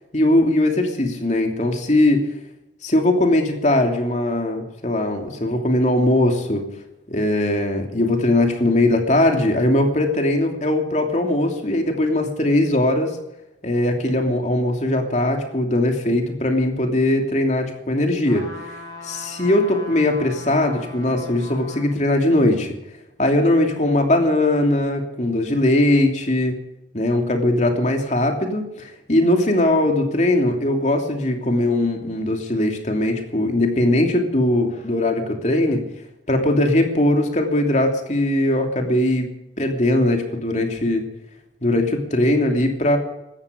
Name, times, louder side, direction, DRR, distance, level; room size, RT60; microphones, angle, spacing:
voice 1, 0.1-2.3 2.8-6.6 7.1-13.1 13.6-18.5 19.0-22.7 23.2-26.6 26.9-35.8 36.3-39.3 39.6-41.0 41.6-43.0, left 1 dB, 40° left, 3 dB, 2.9 m, -20 dB
sound 1, 18.2-21.9 22.4-22.5, left 2 dB, 20° left, 7.0 m, -38 dB
17.0 x 14.0 x 5.2 m, 0.90 s
head